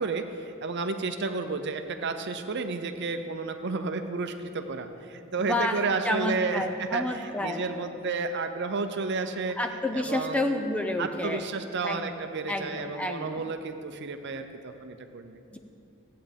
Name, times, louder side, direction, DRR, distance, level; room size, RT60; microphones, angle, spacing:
voice 1, 0.0-9.6 9.9-10.6 11.0-15.4, right 4 dB, 55° right, 7 dB, 0.6 m, -32 dB
voice 2, 5.4-7.6 9.6-11.4 11.8-12.1 12.5-13.4 15.5-15.6, left 1 dB, 5° left, 5 dB, 0.5 m, -30 dB
15.5 x 8.6 x 3.5 m, 2.6 s
head